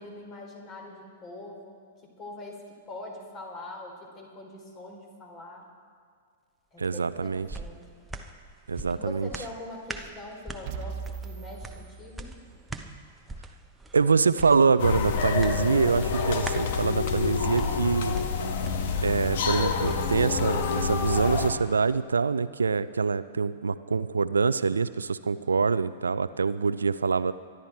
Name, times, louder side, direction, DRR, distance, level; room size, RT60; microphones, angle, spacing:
voice 1, 0.0-5.7 6.7-7.8 8.9-12.3, left 2 dB, 25° left, 1 dB, 3.9 m, -43 dB
sound 1, 6.8-20.5 20.9-21.0, right 2 dB, 10° right, 1.0 m, -43 dB
voice 2, 6.8-7.5 8.7-9.3 13.9-18.2 19.0-27.3, right 5 dB, 75° right, 14 dB, 0.6 m, -25 dB
sound 2, 10.6-12.7, right 6 dB, 40° right, 1.3 m, -39 dB
sound 3, 14.8-21.5, left 5 dB, 55° left, 1.5 m, -27 dB
24.5 x 11.5 x 4.5 m, 2.1 s
figure-of-eight pair, 105°, 0 cm